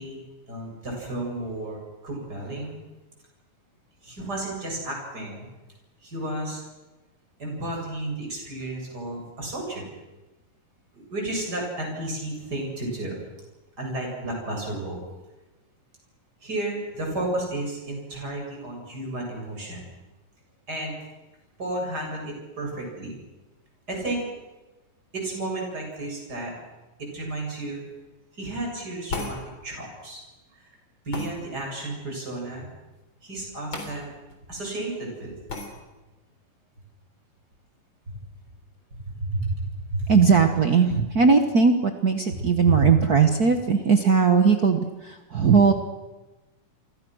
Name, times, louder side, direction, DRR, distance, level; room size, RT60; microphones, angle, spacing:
voice 1, 0.0-2.7 4.0-5.5 6.0-6.6 7.4-9.8 10.9-13.2 13.8-15.0 16.4-19.8 20.7-20.9 21.6-23.2 23.9-24.2 25.1-26.5 27.0-27.8 28.3-30.2 30.5-30.7 31.0-32.7 33.2-34.1 34.5-35.3 39.1-39.6 39.9-40.1 42.7-42.9, right 1 dB, 25° right, 0 dB, 8.4 m, -32 dB
sound 1, 29.1-29.4 31.1-31.3 33.7-33.9 34.3-34.4 35.5-35.7, left 3 dB, 35° left, 4.5 m, -32 dB
voice 2, 40.1-45.7, right 5 dB, 70° right, 6 dB, 0.8 m, -19 dB
30.0 x 24.0 x 6.4 m, 1.1 s
omnidirectional pair, 3.8 m